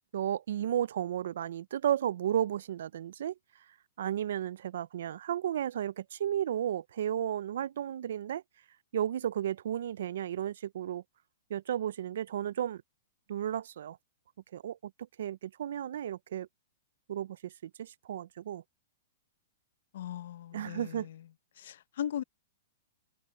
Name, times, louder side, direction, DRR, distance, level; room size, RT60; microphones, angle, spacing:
voice 1, 0.1-3.3 4.0-8.4 8.9-11.0 11.5-12.8 13.3-14.0 14.5-14.9 15.2-16.5 17.1-18.6 20.5-21.1, right 10 dB, 70° right, 0.4 m, -33 dB
voice 2, 19.9-21.2 21.6-22.2, left 10 dB, 65° left, 0.6 m, -38 dB
hypercardioid pair, 160°, 0 cm